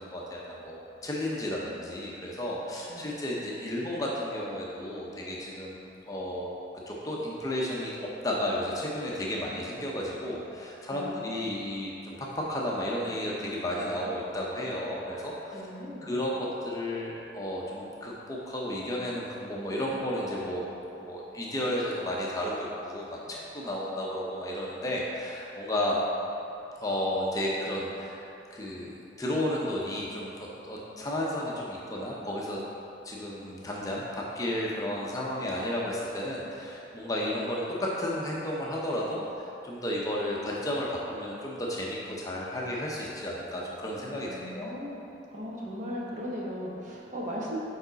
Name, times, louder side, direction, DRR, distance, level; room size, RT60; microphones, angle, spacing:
voice 1, 0.0-5.8 6.1-6.5 6.9-8.0 8.2-15.6 16.0-20.6 20.9-26.0 26.8-28.2 28.5-28.9 29.2-32.6 33.0-44.8, left 1 dB, 20° left, -4 dB, 0.7 m, -33 dB
voice 2, 10.9-11.4 15.5-16.1 44.2-47.6, equal, 40° right, -4 dB, 1.0 m, -38 dB
7.0 x 4.9 x 3.9 m, 3.0 s
head